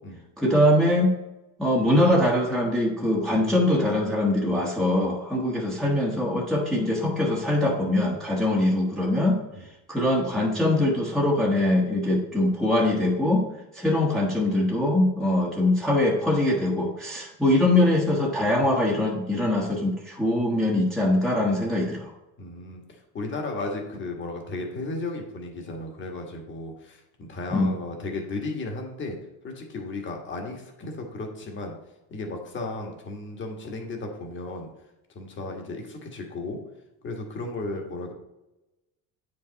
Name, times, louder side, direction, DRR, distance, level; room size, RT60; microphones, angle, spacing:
voice 1, 0.4-1.1 1.6-9.4 9.9-13.5 13.7-22.1 27.5-27.7, left 1 dB, ahead, -4 dB, 1.1 m, -22 dB
voice 2, 22.4-29.2 29.4-31.7 32.1-34.7 35.1-36.6 37.0-38.1, left 2 dB, 30° left, 2 dB, 1.7 m, -34 dB
8.9 x 5.3 x 4.0 m, 0.96 s
cardioid pair, 150°, 36 cm